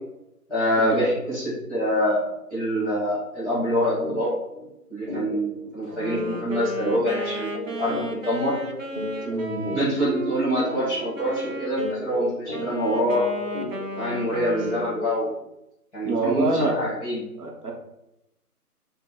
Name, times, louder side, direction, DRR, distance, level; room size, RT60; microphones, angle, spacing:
voice 1, 0.5-2.2 2.5-4.3 4.9-8.5 9.7-13.3 14.0-15.3 15.9-17.2, equal, ahead, -9 dB, 1.5 m, -25 dB
sound 1, 4.0-4.2 4.5-4.7 5.1-15.3, left 1 dB, 15° right, 1.4 m, -35 dB
Wind instrument woodwind instrument, 5.8-12.0 12.5-15.1, right 1 dB, 55° right, 0.8 m, -34 dB
voice 2, 9.3-9.8 16.0-16.8 17.4-17.7, right 3 dB, 70° right, 0 dB, 1.2 m, -26 dB
5.1 x 2.5 x 4.0 m, 0.87 s
figure-of-eight pair, 155°, 47 cm